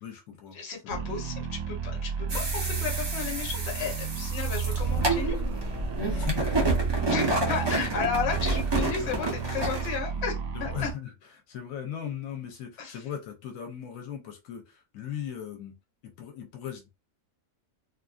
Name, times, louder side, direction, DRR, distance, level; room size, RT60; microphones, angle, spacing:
voice 1, 0.0-0.6 0.8-1.0 1.9-2.0 6.0-7.9 9.0-9.2 10.5-11.1 11.5-15.7 16.0-16.9, left 9 dB, 80° left, 4 dB, 1.0 m, -39 dB
voice 2, 0.5-5.4 7.1-10.9 12.8-13.0, left 6 dB, 55° left, 2 dB, 1.0 m, -33 dB
sound 1, 0.9-10.9, right 6 dB, 80° right, 1.0 m, -32 dB
sound 2, 2.3-10.0, right 2 dB, 30° right, 0.5 m, -30 dB
2.6 x 2.5 x 2.3 m, 0.25 s
omnidirectional pair, 1.4 m